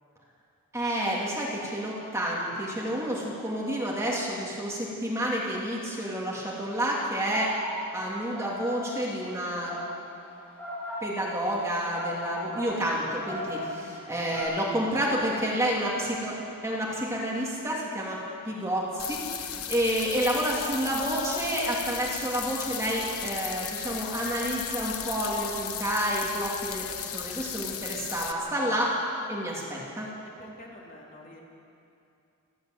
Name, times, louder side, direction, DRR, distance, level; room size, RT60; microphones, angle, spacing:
voice 1, 0.7-7.5 7.9-9.7 11.0-16.4 16.6-28.9 29.3-30.1, equal, 15° right, -4 dB, 2.8 m, -29 dB
sound 1, 7.3-14.4, equal, 5° left, 6.6 m, -37 dB
sound 2, 19.0-28.3, left 10 dB, 65° left, 1.1 m, -36 dB
voice 2, 30.4-31.4, left 1 dB, 40° left, -2 dB, 2.9 m, -48 dB
28.0 x 12.0 x 8.0 m, 2.7 s
head